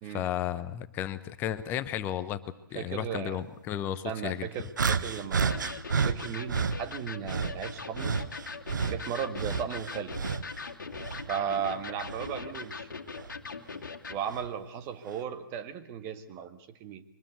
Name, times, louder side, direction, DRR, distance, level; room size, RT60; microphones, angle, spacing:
voice 1, 0.0-2.4 2.7-4.5, left 11 dB, 15° left, 13 dB, 0.9 m, -33 dB
voice 2, 2.7-3.4 4.0-8.2 8.9-10.1 11.3-12.9 14.1-17.0, right 8 dB, 20° right, 9 dB, 1.7 m, -36 dB
sound 1, 4.8-6.8 7.3-10.6 10.9-12.4 13.2-13.3 14.3-14.5, right 5 dB, 60° right, 1.4 m, -31 dB
Electric guitar, 5.5-14.2, left 4 dB, 60° left, 2.2 m, -41 dB
23.5 x 20.0 x 8.1 m, 0.75 s
figure-of-eight pair, 130°, 11 cm